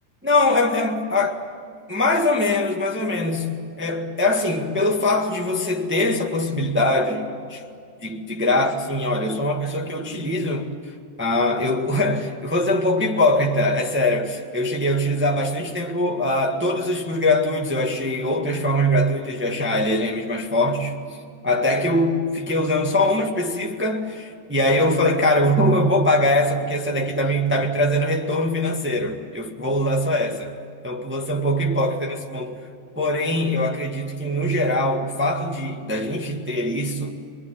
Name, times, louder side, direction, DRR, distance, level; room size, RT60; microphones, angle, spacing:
voice 1, 0.2-1.4 1.9-7.6 8.0-10.7 11.2-20.9 21.4-30.5 30.8-32.6 32.9-37.1, left 1 dB, 15° right, 0.3 m, -22 dB
23.5 x 23.0 x 10.0 m
omnidirectional pair, 3.8 m